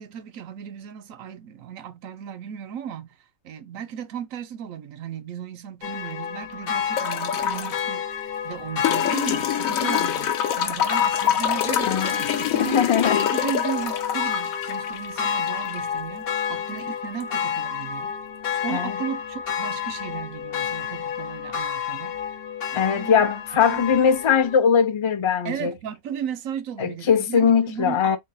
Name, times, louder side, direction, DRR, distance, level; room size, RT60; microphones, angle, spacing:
voice 1, 0.0-8.1 8.4-10.3 10.6-13.0 13.3-18.1 18.5-22.2 22.7-23.2 23.7-23.8 25.4-28.2, right 9 dB, 80° right, 1.1 m, -35 dB
sound 1, 5.8-24.6, left 7 dB, 55° left, 0.8 m, -30 dB
sound 2, 7.0-7.8 8.8-15.8 17.2-17.3, left 10 dB, 90° left, 1.1 m, -25 dB
voice 2, 12.6-13.3 18.7-19.0 22.7-25.7 26.8-28.2, left 7 dB, 35° left, 0.5 m, -21 dB
3.9 x 3.9 x 2.2 m
omnidirectional pair, 1.4 m